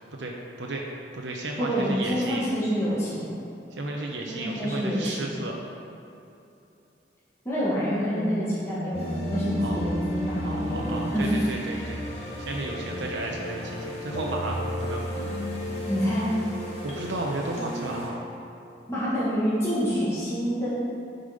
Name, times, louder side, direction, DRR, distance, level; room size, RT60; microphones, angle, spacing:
voice 1, 0.2-0.8 1.1-2.4 3.7-5.6 9.6-9.8 10.3-12.0 12.4-15.2 16.8-18.2, right 2 dB, 85° right, -1 dB, 0.9 m, -33 dB
voice 2, 1.6-3.3 4.3-5.3 7.4-11.3 11.7-11.8 15.9-16.3 18.9-20.7, equal, 15° left, -10 dB, 2.0 m, -27 dB
sound 1, 8.9-18.1, equal, 35° left, 2.3 m, -33 dB
10.0 x 5.5 x 5.2 m, 2.8 s
head